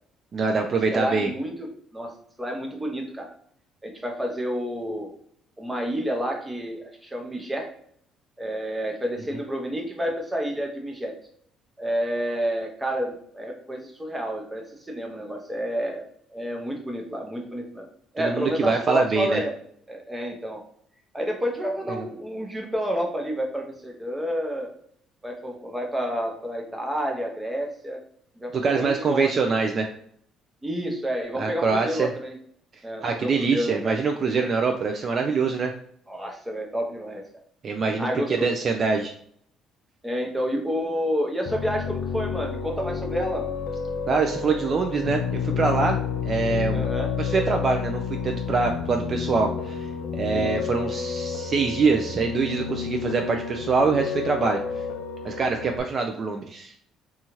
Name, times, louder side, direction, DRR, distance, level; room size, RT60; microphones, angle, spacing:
voice 1, 0.3-1.3 18.2-19.4 28.5-29.9 31.3-32.1 33.0-35.7 37.6-38.1 38.4-39.1 44.1-46.0 46.2-46.8 47.2-49.9 50.1-54.6 55.2-56.7, right 4 dB, 40° right, 4 dB, 0.3 m, -24 dB
voice 2, 0.9-2.1 2.4-3.3 3.8-5.1 5.6-7.7 8.4-11.1 11.8-17.9 18.1-19.5 19.9-20.6 21.1-24.7 25.2-28.0 28.4-29.3 30.6-32.4 32.8-34.0 36.1-37.2 38.0-38.5 40.0-43.5 46.7-47.1 50.3-50.5, equal, 10° right, 1 dB, 0.7 m, -29 dB
Piano, 41.5-55.8, left 6 dB, 80° left, 0.4 m, -30 dB
2.7 x 2.3 x 2.9 m, 0.66 s
cardioid pair, 100°, 0 cm